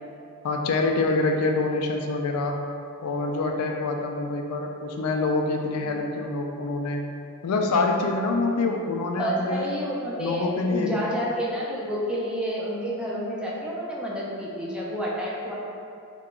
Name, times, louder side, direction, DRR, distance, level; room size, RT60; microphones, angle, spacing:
voice 1, 0.4-2.6 3.0-7.0 7.4-9.7 10.2-10.9, left 3 dB, 90° left, 3 dB, 0.4 m, -26 dB
voice 2, 9.2-15.5, equal, 5° right, -6 dB, 0.5 m, -29 dB
3.7 x 2.2 x 3.7 m, 2.4 s
head